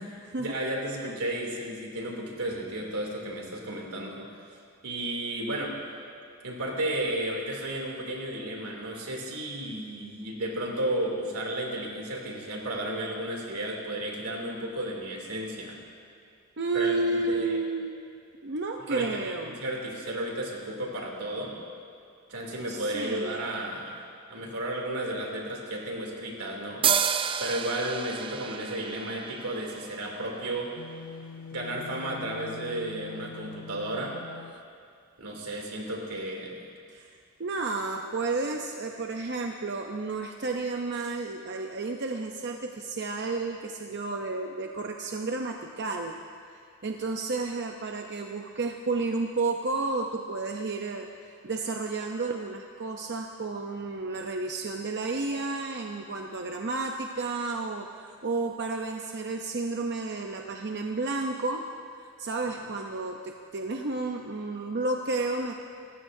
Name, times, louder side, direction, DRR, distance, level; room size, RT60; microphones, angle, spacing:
voice 1, 0.0-4.3 4.8-5.8 6.4-15.8 16.7-17.6 18.8-21.6 22.3-24.0 24.3-26.8 27.4-30.7 31.5-34.2 35.2-36.7, right 1 dB, 85° right, -1 dB, 2.9 m, -33 dB
voice 2, 16.6-17.9 18.4-19.6 22.7-23.5 36.9-46.1 46.8-51.1 51.4-61.6 62.0-65.5, right 3 dB, 50° right, 2 dB, 0.7 m, -31 dB
sound 1, 26.8-30.4, right 7 dB, 25° right, 0.3 m, -30 dB
sound 2, 30.8-34.6, left 5 dB, 70° left, 0.5 m, -44 dB
29.5 x 15.0 x 2.7 m, 2.3 s
head